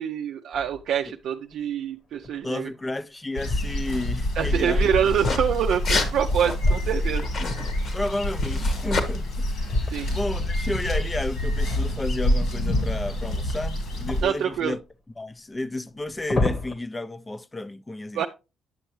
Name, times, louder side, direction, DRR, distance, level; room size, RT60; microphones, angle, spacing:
voice 1, 0.0-2.7 4.4-7.3 9.9-10.1 14.2-14.7 18.1-18.3, right 8 dB, 75° right, 0.4 m, -26 dB
sound 1, 0.5-1.0 1.5-1.6 2.2-2.8 3.3-4.2 5.9-7.6 9.6-10.5 12.5-13.7 14.1-14.8 15.9-16.7, left 2 dB, 35° left, 1.1 m, -30 dB
voice 2, 2.4-4.9 6.5-6.6 7.9-14.8 15.2-18.3, left 2 dB, 20° left, 0.4 m, -32 dB
sound 2, 3.4-14.2, left 1 dB, 75° left, 2.5 m, -27 dB
sound 3, 5.0-5.4 5.7-6.1 6.4-6.5 7.2-9.1, left 3 dB, 55° left, 1.3 m, -29 dB
8.9 x 6.5 x 3.1 m
cardioid pair, 90°, 0 cm